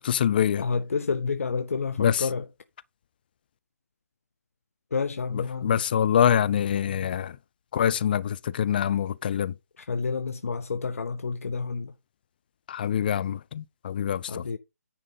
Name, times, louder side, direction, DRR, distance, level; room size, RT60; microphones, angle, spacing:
voice 1, 0.0-0.6 2.0-2.3 5.3-7.4 7.7-9.5 12.7-14.5, left 9 dB, 35° left, 0.6 m, -25 dB
voice 2, 0.6-2.4 4.9-5.8 9.8-11.9 14.3-14.6, left 5 dB, 55° left, 0.9 m, -29 dB
9.9 x 5.0 x 5.5 m
figure-of-eight pair, 140°, 9 cm